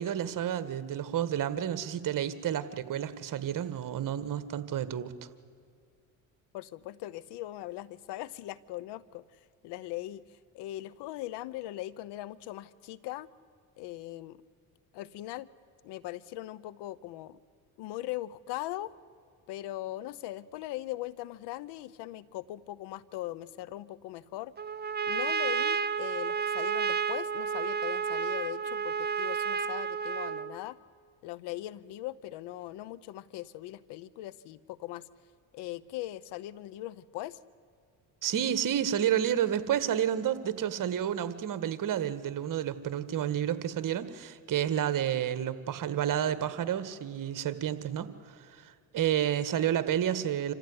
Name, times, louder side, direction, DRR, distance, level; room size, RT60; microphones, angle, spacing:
voice 1, 0.0-5.1 38.2-48.1 48.5-50.5, right 10 dB, 50° right, 14 dB, 1.7 m, -30 dB
voice 2, 6.5-13.3 13.8-14.4 14.9-15.5 15.8-17.4 17.8-18.9 19.5-24.5 25.0-30.8 31.2-35.1 35.5-37.4, left 15 dB, 75° left, 20 dB, 1.0 m, -40 dB
Trumpet, 24.6-30.6, right 6 dB, 25° right, 0.8 m, -31 dB
27.0 x 15.0 x 9.7 m, 2.2 s
cardioid pair, 95°, 41 cm